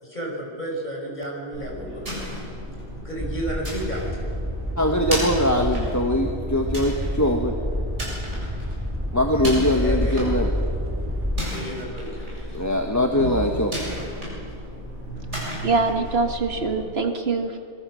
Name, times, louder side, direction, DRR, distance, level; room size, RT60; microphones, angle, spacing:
voice 1, 0.0-2.3 3.0-4.3 9.8-10.3 11.5-12.6, right 1 dB, 40° left, -1 dB, 5.9 m, -33 dB
sound 1, 1.5-16.8, equal, 85° right, 8.1 m, -34 dB
sound 2, 3.2-11.4, equal, 10° right, 1.5 m, -28 dB
voice 2, 4.8-7.5 9.1-10.5 12.5-13.7, left 1 dB, 15° left, 2 dB, 1.4 m, -22 dB
voice 3, 15.6-17.6, right 4 dB, 60° right, 4 dB, 1.9 m, -23 dB
25.5 x 23.5 x 6.4 m, 2.4 s
omnidirectional pair, 1.2 m